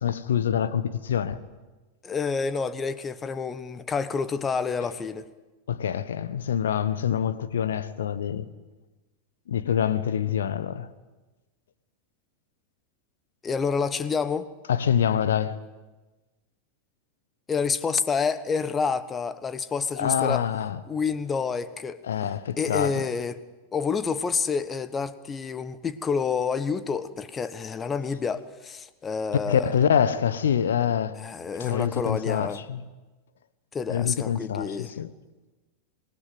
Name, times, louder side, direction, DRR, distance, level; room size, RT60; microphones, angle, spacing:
voice 1, 0.0-1.4 5.7-8.5 9.5-10.9 14.7-15.6 20.0-20.8 22.0-23.0 29.5-31.2 31.6-32.8 33.9-35.1, left 8 dB, 65° left, 1.3 m, -25 dB
voice 2, 2.0-5.3 13.4-14.5 17.5-20.4 20.9-22.0 22.6-23.4 23.7-29.7 31.2-32.6 33.7-34.9, left 5 dB, 20° left, 1.3 m, -28 dB
26.5 x 20.5 x 7.9 m
figure-of-eight pair, 90°, 0 cm